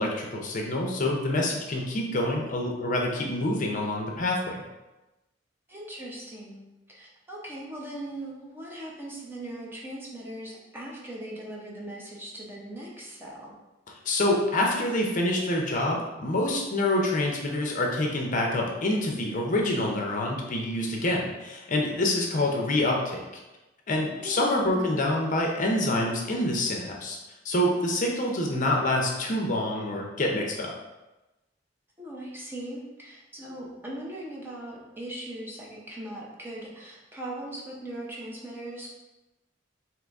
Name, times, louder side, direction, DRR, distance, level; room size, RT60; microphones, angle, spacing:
voice 1, 0.0-4.6 14.0-23.2 23.9-27.2 27.4-30.7, left 1 dB, 45° left, 0 dB, 0.6 m, -26 dB
voice 2, 5.7-13.5 24.2-25.0 32.0-39.0, right 1 dB, 10° right, -4 dB, 0.7 m, -39 dB
3.8 x 2.9 x 3.5 m, 1.0 s
head